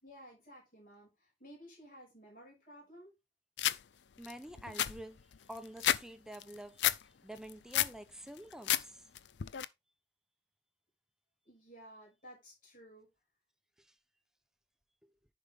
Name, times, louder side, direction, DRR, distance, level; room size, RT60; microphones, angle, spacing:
voice 1, 0.0-3.1 11.5-13.1, equal, 50° left, 5.6 m, -55 dB
sound 1, 3.6-3.8 4.2-4.3 4.6-6.0 6.3-7.0 7.4-8.0 8.4-8.8 9.1-9.6, left 11 dB, 85° left, 0.5 m, -31 dB
voice 2, 4.2-9.1 13.8-14.0 15.0-15.1, right 1 dB, 5° right, 0.8 m, -49 dB
10.5 x 5.2 x 3.6 m
head